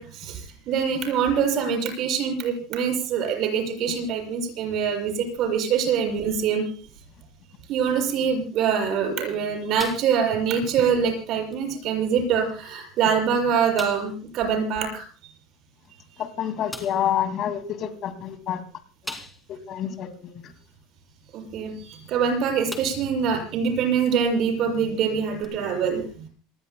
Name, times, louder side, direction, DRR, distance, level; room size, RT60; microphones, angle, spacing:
voice 1, 0.0-6.6 7.7-15.0 21.3-26.0, right 7 dB, 40° right, 2 dB, 6.8 m, -24 dB
sound 1, 9.8-10.5 10.8-11.0 11.5-11.6 12.5-12.6 13.0-13.1 13.8-14.2 15.8-15.9 16.7-17.1 19.0-19.6 20.1-20.2 22.1-22.2 22.7-23.2 23.6-23.7 25.4-25.5, left 1 dB, 5° left, 2.4 m, -39 dB
voice 2, 16.2-18.6 19.0-19.1 19.5-20.5, left 9 dB, 35° left, 9 dB, 2.3 m, -28 dB
27.5 x 18.5 x 2.2 m, 0.39 s
cardioid pair, 170°, 0 cm